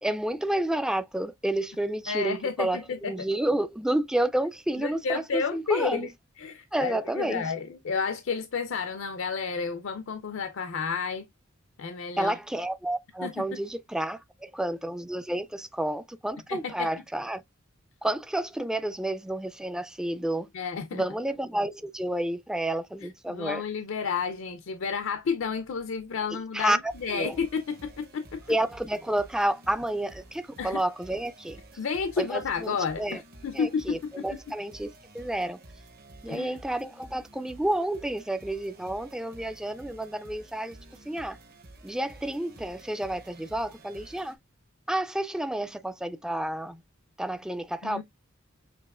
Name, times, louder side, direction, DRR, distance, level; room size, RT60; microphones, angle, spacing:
voice 1, 0.0-6.1 6.7-7.4 12.2-17.4 18.0-20.5 20.9-23.6 26.3-27.3 28.5-31.6 32.2-33.2 33.5-35.6 36.2-40.8 41.1-41.4 41.8-44.4 44.9-46.8 47.2-48.0, right 1 dB, 5° right, 0.3 m, -30 dB
voice 2, 2.1-3.1 4.8-6.1 6.4-11.3 11.8-12.3 13.2-13.6 16.5-16.9 20.5-21.0 23.3-28.4 30.6-30.8 31.8-34.3 36.3-36.6 47.8-48.0, left 5 dB, 70° left, 0.5 m, -31 dB
sound 1, 26.9-44.3, right 2 dB, 50° right, 0.9 m, -51 dB
6.8 x 2.9 x 2.3 m
head